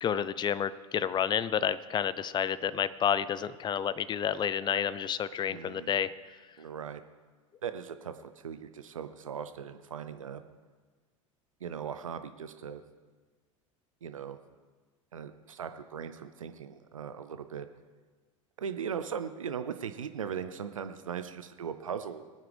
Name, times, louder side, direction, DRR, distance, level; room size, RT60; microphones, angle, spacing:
voice 1, 0.0-6.1, left 8 dB, 25° left, 16 dB, 0.6 m, -30 dB
voice 2, 5.5-5.9 6.6-7.0 7.6-10.4 11.6-12.8 14.0-14.4 15.1-17.7 18.6-22.2, right 7 dB, 80° right, 10 dB, 0.7 m, -39 dB
23.0 x 9.4 x 3.5 m, 1.4 s
figure-of-eight pair, 80°, 17 cm